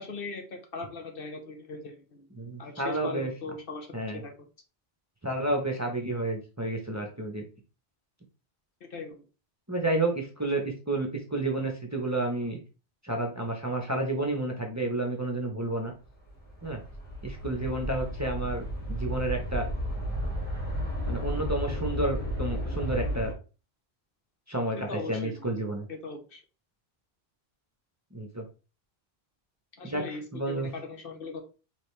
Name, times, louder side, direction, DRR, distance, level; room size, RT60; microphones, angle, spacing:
voice 1, 0.0-2.3 2.6-3.9 4.1-4.5 8.8-9.2 24.9-25.5 25.9-26.4 29.8-31.4, left 4 dB, 60° left, 4 dB, 1.1 m, -39 dB
voice 2, 2.4-3.3 3.9-4.2 5.2-7.4 9.7-12.6 13.0-15.9 16.6-16.8 17.2-19.7 21.1-23.3 24.5-25.9 28.1-28.4 29.8-30.7, right 2 dB, 20° right, 2 dB, 0.7 m, -30 dB
sound 1, 16.0-23.3, equal, 10° left, 1.6 m, -33 dB
5.0 x 3.2 x 3.2 m, 0.33 s
omnidirectional pair, 1.1 m